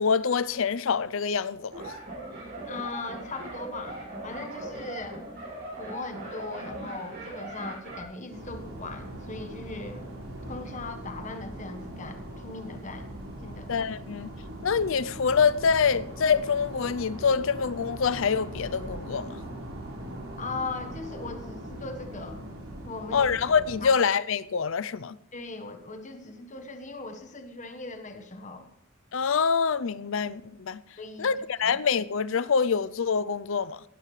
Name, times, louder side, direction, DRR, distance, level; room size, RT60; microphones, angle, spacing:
voice 1, 0.0-2.0 13.7-14.3 14.6-19.4 23.1-25.2 29.1-30.8 31.2-33.8, left 6 dB, 65° left, 0.5 m, -25 dB
sound 1, 1.7-8.0, right 2 dB, 50° right, 6.5 m, -39 dB
voice 2, 2.6-5.2 5.8-10.1 10.5-13.1 13.4-13.7 20.4-22.5 22.8-23.3 23.8-24.1 25.3-28.7 31.0-31.8, left 3 dB, 35° left, 1.3 m, -39 dB
sound 2, 8.3-23.9, right 1 dB, 70° right, 4.5 m, -40 dB
16.5 x 12.5 x 3.3 m
head